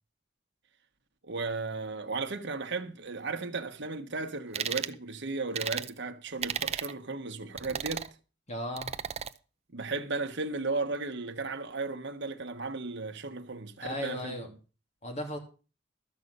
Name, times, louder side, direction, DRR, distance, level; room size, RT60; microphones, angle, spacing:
voice 1, 1.2-8.1 9.7-14.5, right 3 dB, 65° right, 1.2 m, -35 dB
sound 1, 4.5-4.9 5.5-5.9 6.4-6.9 7.6-8.1 8.8-9.3, right 8 dB, 35° right, 0.6 m, -34 dB
voice 2, 8.5-8.9 13.8-14.5 15.0-15.4, left 1 dB, 35° left, 2.5 m, -35 dB
13.0 x 5.3 x 8.0 m
head